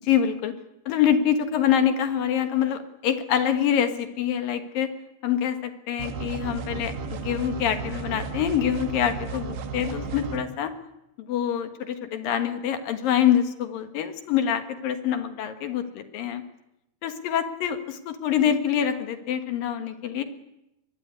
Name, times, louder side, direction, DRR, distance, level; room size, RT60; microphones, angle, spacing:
voice 1, 0.1-0.5 0.9-4.9 5.2-10.7 11.3-16.4 17.0-20.2, left 9 dB, 65° left, 8 dB, 2.9 m, -25 dB
sound 1, 6.0-10.4, right 5 dB, 75° right, 4.1 m, -34 dB
23.5 x 22.0 x 9.7 m, 0.90 s
omnidirectional pair, 4.7 m